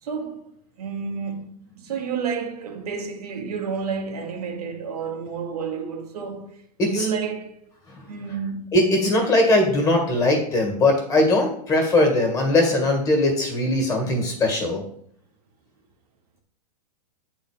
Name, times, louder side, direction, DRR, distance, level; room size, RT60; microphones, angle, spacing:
voice 1, 0.0-7.6 8.0-8.7 9.0-9.3, right 6 dB, 70° right, 1.5 m, -30 dB
voice 2, 8.7-14.8, left 1 dB, 15° left, 1.8 m, -20 dB
8.1 x 4.1 x 5.0 m
hypercardioid pair, 150°, 20 cm